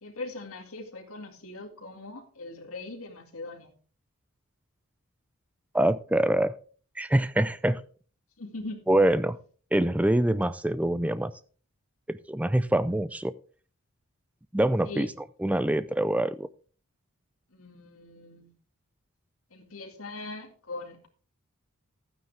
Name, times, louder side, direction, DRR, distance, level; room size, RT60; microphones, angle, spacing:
voice 1, 0.0-3.8 8.4-8.8 14.8-15.1 17.5-18.5 19.5-21.1, left 2 dB, 70° left, 2.1 m, -41 dB
voice 2, 5.7-6.5 7.0-7.8 8.9-9.4 9.7-11.3 12.1-13.3 14.5-15.1 15.4-16.5, right 1 dB, 5° right, 0.4 m, -25 dB
12.0 x 9.3 x 3.3 m
head